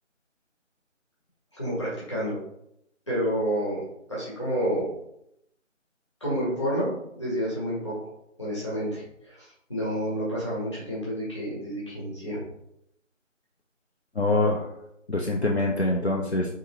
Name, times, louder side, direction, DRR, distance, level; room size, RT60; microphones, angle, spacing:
voice 1, 1.5-2.4 3.1-3.8 4.1-4.9 6.2-7.9 8.4-12.4, equal, 20° left, -8 dB, 1.5 m, -29 dB
voice 2, 14.2-14.7 15.1-16.5, left 2 dB, 55° left, -1 dB, 0.6 m, -24 dB
3.7 x 3.5 x 3.1 m, 0.77 s
figure-of-eight pair, 165°, 39 cm